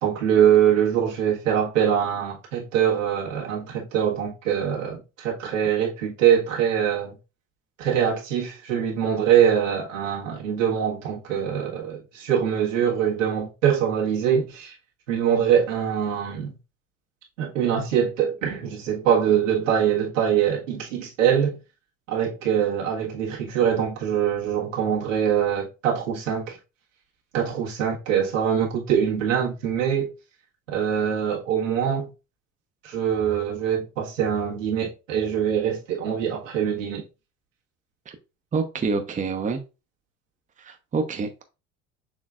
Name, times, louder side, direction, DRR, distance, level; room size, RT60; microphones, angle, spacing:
voice 1, 0.0-7.1 7.8-14.7 15.1-16.5 17.4-21.6 22.1-26.6 27.3-30.1 30.7-32.1 32.8-37.0, right 9 dB, 85° right, 1.5 m, -23 dB
voice 2, 38.5-39.6 40.6-41.4, right 4 dB, 20° right, 0.8 m, -27 dB
6.3 x 3.2 x 2.4 m
hypercardioid pair, 75°, 37 cm